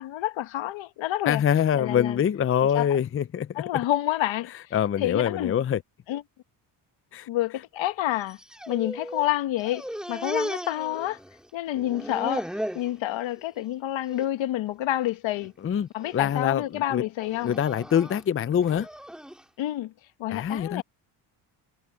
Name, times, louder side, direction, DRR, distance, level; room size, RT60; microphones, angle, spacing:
voice 1, 0.0-1.4 1.7-2.2 2.7-2.9 3.5-4.5 5.0-5.6 6.1-6.2 7.3-8.4 8.7-11.2 11.5-12.5 12.7-15.5 15.9-17.5 19.6-19.9 20.2-20.8, left 14 dB, 75° left, 1.4 m, -28 dB
voice 2, 1.3-3.6 4.7-5.8 7.1-7.3 15.6-17.0 17.4-18.9 20.3-20.8, left 9 dB, 30° left, 0.5 m, -25 dB
sound 1, 8.2-9.3 9.6-11.5 11.7-12.9 13.4-13.7 14.1-14.3 15.1-15.5 16.0-16.4 17.2-19.4, equal, ahead, 2.4 m, -36 dB
cardioid pair, 90°, 46 cm